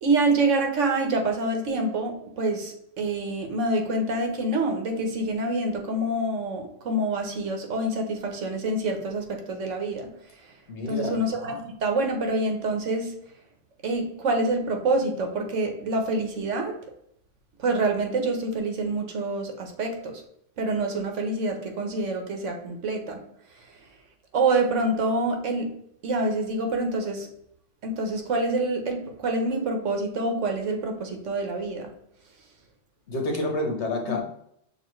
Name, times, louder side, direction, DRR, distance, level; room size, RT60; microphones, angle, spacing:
voice 1, 0.0-10.1 10.9-13.1 13.8-16.7 17.6-20.2 20.6-23.2 24.3-25.7 26.0-27.3 27.8-31.9 34.0-34.1, right 2 dB, 80° right, 3 dB, 1.2 m, -26 dB
voice 2, 10.7-11.2 33.1-34.2, left 2 dB, 65° left, 2 dB, 1.3 m, -28 dB
6.6 x 2.6 x 3.1 m, 0.71 s
omnidirectional pair, 1.3 m